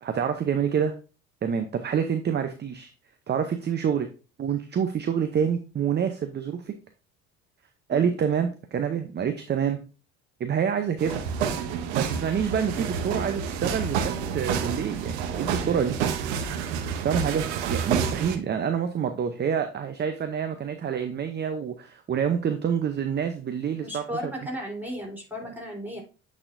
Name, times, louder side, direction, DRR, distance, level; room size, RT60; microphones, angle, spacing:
voice 1, 0.0-0.9 1.4-2.9 3.3-4.1 4.4-6.7 7.9-9.8 10.4-11.2 11.9-16.0 17.0-24.0, right 7 dB, 30° right, 8 dB, 0.7 m, -27 dB
sound 1, 11.0-18.4, right 7 dB, 90° right, 0.9 m, -29 dB
voice 2, 23.8-26.0, equal, 5° right, -2 dB, 3.6 m, -35 dB
8.7 x 4.2 x 2.6 m, 0.34 s
supercardioid pair, 80°, 32 cm